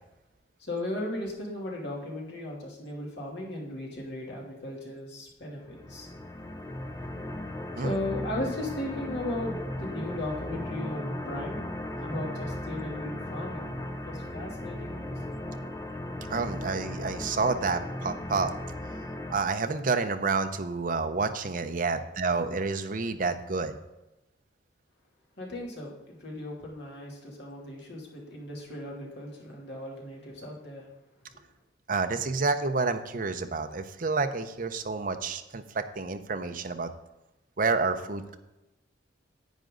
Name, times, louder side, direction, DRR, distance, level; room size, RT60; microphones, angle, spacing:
voice 1, 0.6-6.1 7.8-11.6 12.0-15.4 25.4-30.9, left 1 dB, 60° left, -2 dB, 2.8 m, -36 dB
sound 1, 5.6-19.4, left 1 dB, 20° left, 0.6 m, -37 dB
voice 2, 16.3-18.5 19.3-23.7 31.9-36.9 37.6-38.4, right 4 dB, 45° right, 7 dB, 0.7 m, -29 dB
10.5 x 8.9 x 3.9 m, 0.97 s
head